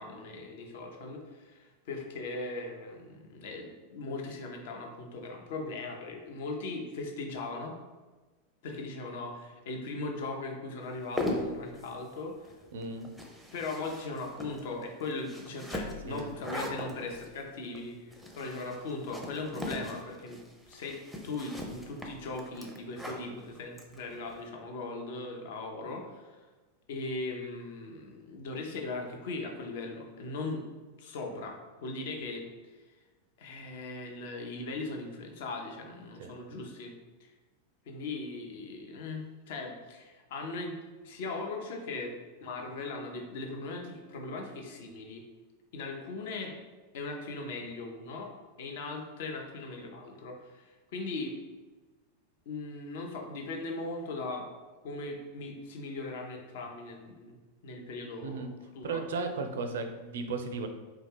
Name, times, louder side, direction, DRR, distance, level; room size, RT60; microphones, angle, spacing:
voice 1, 0.0-7.8 8.6-12.5 13.5-26.4 26.9-30.6 31.0-32.4 33.4-36.9 37.2-37.3 37.9-40.8 41.0-42.1 42.4-45.2 45.7-46.5 46.9-48.3 48.6-51.4 52.5-54.5 54.8-57.4 57.6-58.5 58.7-59.0, left 3 dB, 55° left, 2 dB, 0.6 m, -39 dB
sound 1, 10.9-24.4, left 1 dB, ahead, 0.5 m, -40 dB
voice 2, 12.7-13.1 16.1-16.3 36.2-36.3 58.2-58.5 58.8-60.7, right 4 dB, 60° right, 6 dB, 0.4 m, -35 dB
4.2 x 2.3 x 3.3 m, 1.3 s
figure-of-eight pair, 90°, 0 cm